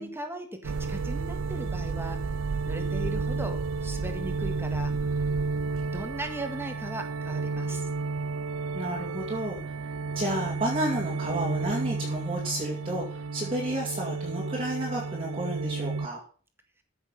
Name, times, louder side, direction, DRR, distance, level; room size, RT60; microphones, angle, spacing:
voice 1, 0.0-2.2 2.6-5.2 5.8-7.9, right 1 dB, 10° right, 6 dB, 1.7 m, -38 dB
sound 1, 0.6-16.1, right 4 dB, 85° right, 0.5 m, -31 dB
voice 2, 8.7-9.7 10.1-16.2, right 1 dB, 30° right, -3 dB, 2.3 m, -31 dB
14.0 x 6.6 x 5.4 m, 0.42 s
head